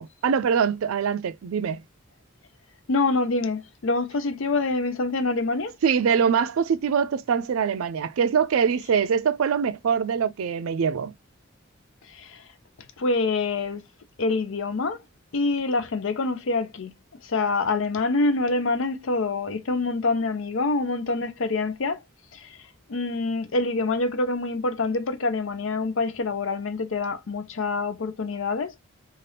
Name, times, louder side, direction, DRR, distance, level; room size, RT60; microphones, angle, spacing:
voice 1, 0.0-1.8 5.8-11.1, right 6 dB, 85° right, 0.4 m, -23 dB
voice 2, 2.9-5.8 12.1-12.4 13.0-13.8 14.2-15.0 15.3-16.9 17.2-22.0 22.3-22.6 22.9-28.7, left 3 dB, 70° left, 0.5 m, -26 dB
2.7 x 2.4 x 3.3 m
head